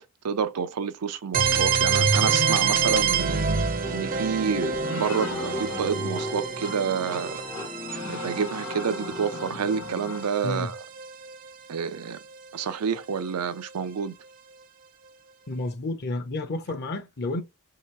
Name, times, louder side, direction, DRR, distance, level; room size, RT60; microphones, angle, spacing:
voice 1, 0.2-7.4 8.1-10.8 11.7-12.2 12.5-14.1, right 6 dB, 85° right, 0.5 m, -29 dB
sound 1, 1.3-11.1, right 6 dB, 40° right, 0.5 m, -27 dB
sound 2, 3.8-9.8, left 2 dB, 15° left, 0.3 m, -37 dB
sound 3, 4.8-6.3 6.6-6.8 7.1-7.2 7.5-10.3, left 4 dB, 70° left, 0.9 m, -39 dB
voice 2, 15.5-17.4, left 2 dB, 50° left, 0.7 m, -30 dB
3.1 x 2.9 x 4.6 m
head